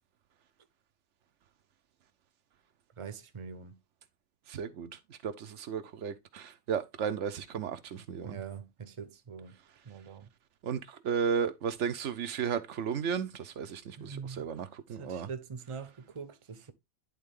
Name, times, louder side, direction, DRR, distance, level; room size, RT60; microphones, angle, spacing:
voice 1, 3.0-3.8 8.2-9.5 9.8-10.3 14.0-14.5 14.9-16.7, right 6 dB, 30° right, 0.8 m, -43 dB
voice 2, 4.5-8.4 10.6-15.3, right 7 dB, 80° right, 1.1 m, -34 dB
10.5 x 3.7 x 3.6 m
omnidirectional pair, 1.2 m